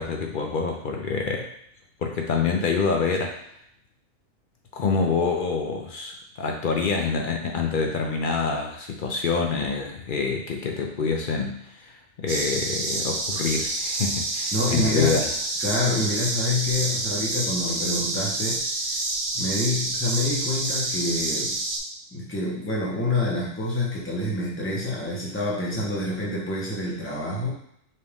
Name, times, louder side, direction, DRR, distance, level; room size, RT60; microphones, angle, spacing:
voice 1, 0.0-1.5 2.0-3.4 4.7-11.9 12.2-15.3, left 4 dB, 55° left, 1 dB, 0.6 m, -26 dB
sound 1, 12.3-21.8, right 2 dB, 50° right, 0.6 m, -28 dB
voice 2, 14.5-15.2 15.6-19.0 19.3-21.6 22.1-27.5, left 2 dB, 10° left, -5 dB, 0.9 m, -27 dB
5.4 x 2.6 x 3.5 m, 0.70 s
omnidirectional pair, 1.4 m